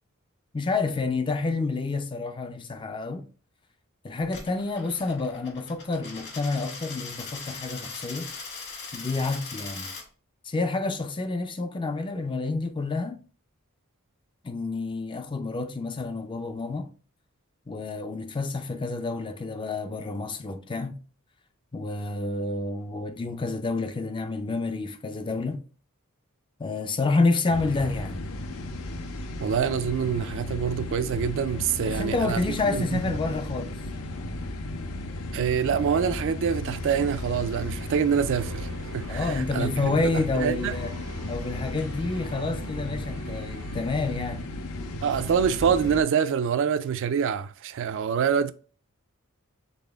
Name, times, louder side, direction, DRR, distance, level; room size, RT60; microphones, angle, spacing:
voice 1, 0.5-3.3 4.0-8.3 8.9-9.9 10.4-13.2 14.4-16.9 17.7-21.0 21.7-25.7 26.6-28.2 31.8-33.8 39.1-40.9 41.3-44.5, left 3 dB, 25° left, 0.4 m, -29 dB
Coin (dropping), 4.2-10.0, left 4 dB, 55° left, 1.4 m, -40 dB
sound 1, 27.5-46.0, left 1 dB, 80° left, 0.6 m, -35 dB
voice 2, 29.4-32.4 32.7-33.1 35.3-40.8 45.0-48.5, right 7 dB, 60° right, 0.3 m, -26 dB
sound 2, 38.3-44.9, right 3 dB, 75° right, 0.8 m, -46 dB
4.1 x 3.7 x 3.3 m
head